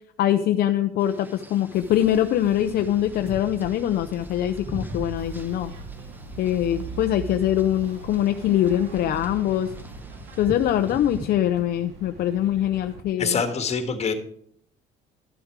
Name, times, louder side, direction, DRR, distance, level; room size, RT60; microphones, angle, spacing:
voice 1, 0.2-5.7 6.4-9.7 10.4-13.4, left 11 dB, 65° left, 7 dB, 0.6 m, -23 dB
sound 1, 1.0-11.3, right 1 dB, 10° right, 1.1 m, -42 dB
sound 2, 1.7-13.0, right 4 dB, 85° right, 2.0 m, -41 dB
voice 2, 13.2-14.1, left 5 dB, 40° left, 7 dB, 1.6 m, -25 dB
12.0 x 7.4 x 4.7 m, 0.64 s
cardioid pair, 110°, 17 cm